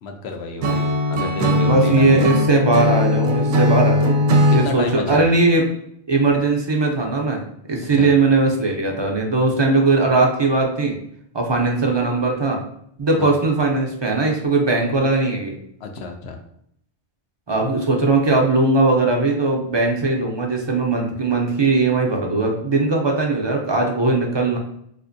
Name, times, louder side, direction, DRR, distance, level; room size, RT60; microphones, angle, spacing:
voice 1, 0.0-2.3 4.5-5.3 7.8-8.1 13.2-13.3 15.8-16.4, left 3 dB, 80° left, 4 dB, 0.9 m, -30 dB
Acoustic guitar / Strum, 0.6-4.7, left 1 dB, 85° right, 0.8 m, -19 dB
voice 2, 1.6-4.2 4.5-5.6 6.1-11.0 11.3-12.6 13.0-15.5 17.5-24.6, right 3 dB, 40° right, 0 dB, 0.4 m, -19 dB
4.2 x 2.5 x 2.5 m, 0.71 s
omnidirectional pair, 1.1 m